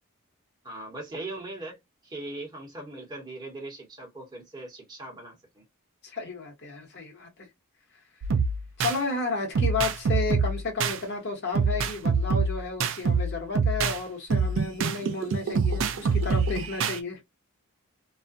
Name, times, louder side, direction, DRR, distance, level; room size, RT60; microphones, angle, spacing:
voice 1, 0.6-5.6, right 2 dB, 20° right, 0.9 m, -40 dB
voice 2, 6.0-7.5 8.8-17.2, left 3 dB, 50° left, 1.1 m, -32 dB
sound 1, 8.2-9.0 9.6-11.0 11.6-14.0 14.3-17.0, right 4 dB, 60° right, 0.3 m, -25 dB
2.4 x 2.1 x 2.4 m
head